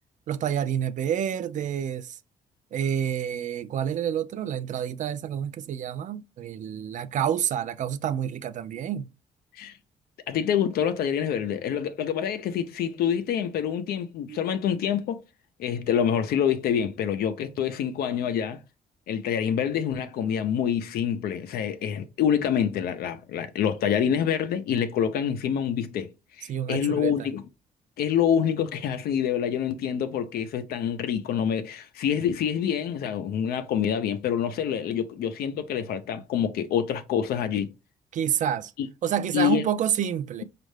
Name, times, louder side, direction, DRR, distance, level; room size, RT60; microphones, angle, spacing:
voice 1, 0.3-2.2 2.7-9.1 14.3-14.4 26.5-27.3 38.1-38.7 39.0-40.4, right 9 dB, 55° right, 0.4 m, -28 dB
voice 2, 10.3-15.2 15.6-18.6 19.1-26.1 26.4-27.4 28.0-37.7 38.8-38.9 39.3-39.6, left 8 dB, 90° left, 0.6 m, -26 dB
5.2 x 2.5 x 3.2 m
cardioid pair, 120°, 16 cm